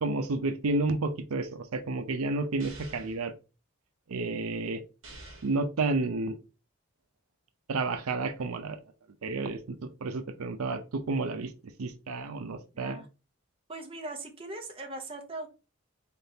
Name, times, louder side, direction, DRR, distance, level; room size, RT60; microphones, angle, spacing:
voice 1, 0.0-3.3 4.1-4.8 5.4-6.4 7.7-8.8 9.2-11.5 11.8-13.0, right 3 dB, 85° right, 0.5 m, -31 dB
sound 1, 2.6-3.2 5.0-5.6, right 2 dB, 65° right, 1.5 m, -47 dB
voice 2, 12.7-13.1 13.7-15.5, right 2 dB, 25° right, 0.6 m, -40 dB
3.8 x 3.6 x 2.7 m
head